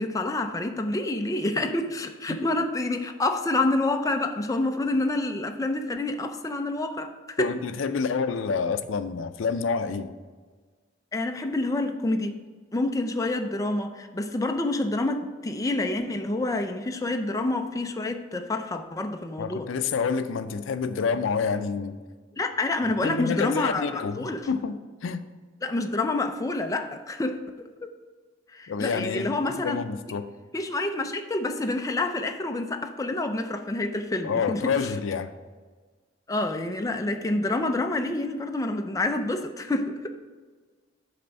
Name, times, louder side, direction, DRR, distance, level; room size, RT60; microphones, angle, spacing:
voice 1, 0.0-7.5 11.1-12.4 12.7-19.7 22.4-24.5 25.6-27.7 28.5-29.8 30.5-34.9 36.3-40.0, left 2 dB, 20° left, 5 dB, 0.4 m, -28 dB
voice 2, 7.4-10.1 19.4-22.0 23.0-25.2 28.7-30.3 34.2-35.3, left 5 dB, 80° left, 10 dB, 0.4 m, -28 dB
8.7 x 3.4 x 5.2 m, 1.4 s
head